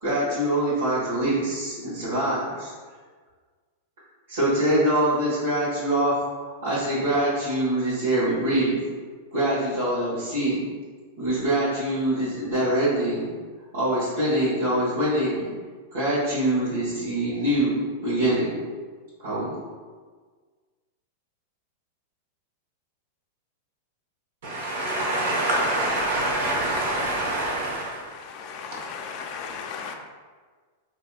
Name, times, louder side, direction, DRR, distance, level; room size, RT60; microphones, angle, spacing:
voice 1, 0.0-2.7 4.3-6.1 6.6-8.8 9.3-10.6 11.2-13.3 13.7-15.5 15.9-17.8 18.0-18.5 19.2-19.5, right 1 dB, 90° right, -12 dB, 1.5 m, -24 dB
voice 2, 24.4-28.0, right 1 dB, 70° right, -4 dB, 1.2 m, -25 dB
voice 3, 28.7-29.9, left 5 dB, 45° left, 3 dB, 0.5 m, -35 dB
4.1 x 2.7 x 2.4 m, 1.5 s
supercardioid pair, 145°, 0 cm